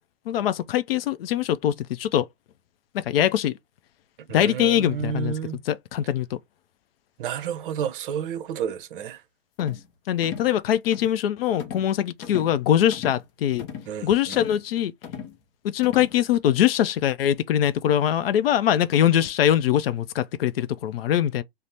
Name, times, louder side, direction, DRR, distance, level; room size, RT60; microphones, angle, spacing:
voice 1, 0.3-2.3 2.9-3.5 4.3-5.3 5.7-6.3 9.6-9.8 10.1-13.7 14.0-14.9 15.6-21.4, left 10 dB, 60° left, 0.5 m, -22 dB
voice 2, 4.3-5.6 7.2-9.2 13.9-14.1, right 9 dB, 55° right, 0.6 m, -30 dB
sound 1, 9.6-9.9 10.2-10.5 10.9-11.2 11.6-11.9 12.2-12.6 12.9-13.2 13.6-13.9 14.3-14.6 15.0-15.4 15.8-16.2, left 7 dB, 35° left, 0.8 m, -37 dB
2.6 x 2.0 x 3.3 m
hypercardioid pair, 130°, 33 cm